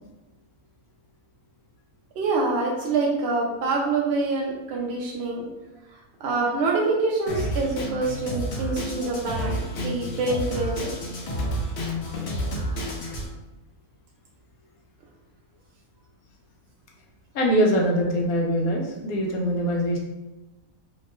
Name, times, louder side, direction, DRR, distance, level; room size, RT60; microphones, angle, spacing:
voice 1, 2.2-5.5 6.2-10.9, right 3 dB, 70° right, -2 dB, 0.6 m, -26 dB
Drum kit, 7.3-13.3, equal, 60° left, 0.7 m, -30 dB
voice 2, 17.3-20.0, equal, 75° left, -1 dB, 1.1 m, -23 dB
3.0 x 2.2 x 2.9 m, 1.1 s
omnidirectional pair, 1.6 m